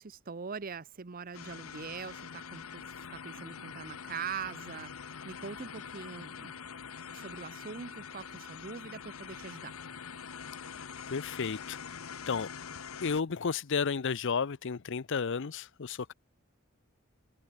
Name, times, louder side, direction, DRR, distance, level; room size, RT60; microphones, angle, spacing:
voice 1, 0.0-2.8 3.1-6.6 7.1-9.7, right 6 dB, 40° right, 0.7 m, -42 dB
sound 1, 1.3-13.2, left 6 dB, 80° left, 1.0 m, -44 dB
voice 2, 11.1-11.8 12.2-12.5 13.0-16.1, left 5 dB, 60° left, 0.6 m, -32 dB
head